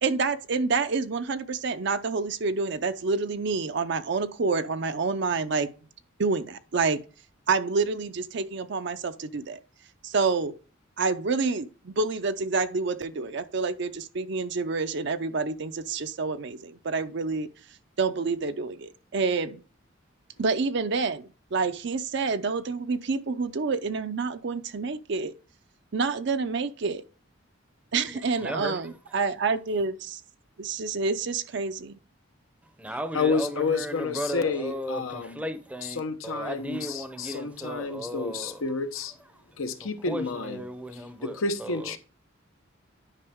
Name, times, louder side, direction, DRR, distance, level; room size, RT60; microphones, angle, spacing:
voice 1, 0.0-5.7 6.2-7.0 7.5-9.6 10.0-10.5 11.0-17.5 18.0-19.6 20.4-25.3 25.9-27.0 27.9-30.2 30.6-32.0, right 4 dB, 60° right, 0.5 m, -28 dB
voice 2, 27.9-29.2 32.6-38.6 39.3-42.0, equal, 5° right, 0.6 m, -36 dB
voice 3, 33.1-35.4 36.0-39.1 39.6-40.6 41.2-42.0, left 4 dB, 85° left, 0.9 m, -30 dB
9.9 x 5.3 x 3.5 m
head